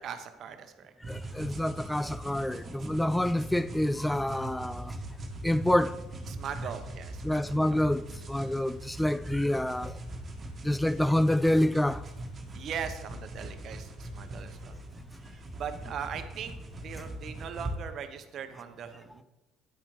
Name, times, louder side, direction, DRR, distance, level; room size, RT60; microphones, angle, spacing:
voice 1, 0.0-0.9 6.3-7.9 12.5-14.8 15.2-16.5 16.8-19.2, right 7 dB, 50° right, 0.9 m, -40 dB
sound 1, 1.0-17.7, right 1 dB, 35° right, 1.5 m, -41 dB
voice 2, 1.1-5.0 5.4-6.0 7.2-10.0 10.6-12.0, left 1 dB, 5° left, 0.3 m, -27 dB
10.0 x 8.6 x 3.2 m
figure-of-eight pair, 55°, 0 cm